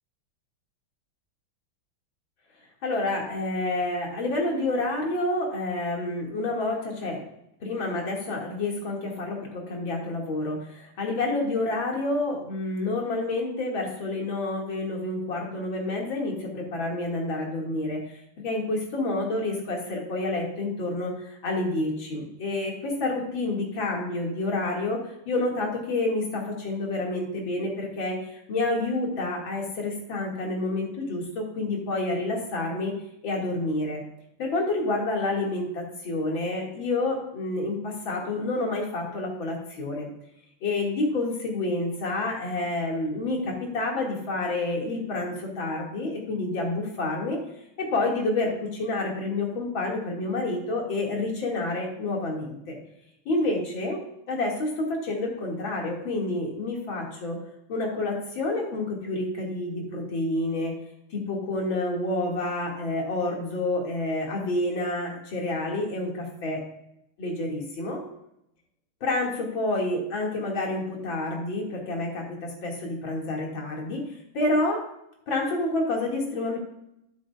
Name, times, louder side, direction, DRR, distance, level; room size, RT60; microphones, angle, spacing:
voice 1, 2.8-7.2 7.6-33.0 33.2-34.0 34.4-40.1 40.6-47.4 47.8-52.8 53.3-54.0 54.3-57.4 57.7-60.7 61.1-66.6 67.2-68.0 69.0-74.0 74.3-74.8 75.3-76.6, left 2 dB, 60° left, -1 dB, 2.9 m, -29 dB
12.0 x 9.5 x 2.4 m, 0.80 s
omnidirectional pair, 2.4 m